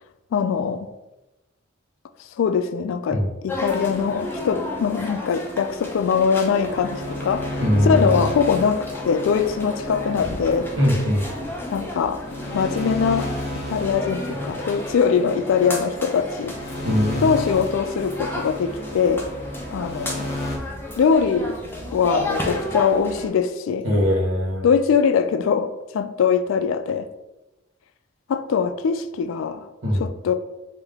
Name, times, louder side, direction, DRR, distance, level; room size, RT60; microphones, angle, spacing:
voice 1, 0.3-0.9 2.4-10.7 11.7-12.2 12.5-16.6 17.2-19.3 19.7-20.3 21.0-21.5 21.9-23.9 24.6-27.1 28.3-29.7 30.0-30.3, left 6 dB, 75° left, 12 dB, 0.3 m, -22 dB
sound 1, 3.5-23.3, left 1 dB, 10° left, 0.5 m, -33 dB
sound 2, 3.7-20.6, left 1 dB, 50° left, 0.8 m, -33 dB
voice 2, 7.6-8.1 10.8-11.2 16.8-17.3 23.8-24.6 29.8-30.0, equal, 70° right, -2 dB, 1.0 m, -20 dB
3.4 x 2.7 x 3.5 m, 1.0 s
head